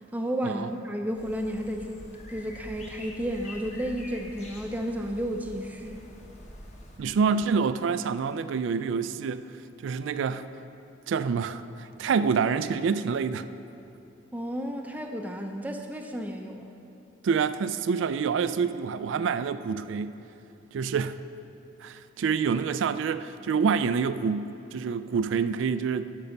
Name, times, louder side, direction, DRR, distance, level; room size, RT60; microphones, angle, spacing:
voice 1, 0.1-2.0 2.3-6.0 14.3-16.7, equal, 10° right, 3 dB, 0.5 m, -32 dB
sound 1, 1.1-7.0, left 1 dB, 35° left, 1.1 m, -45 dB
voice 2, 7.0-9.4 9.8-10.5 11.1-13.5 17.2-20.1 20.7-21.2 21.8-26.1, right 6 dB, 70° right, 13 dB, 0.3 m, -27 dB
12.5 x 5.4 x 5.3 m, 2.8 s
head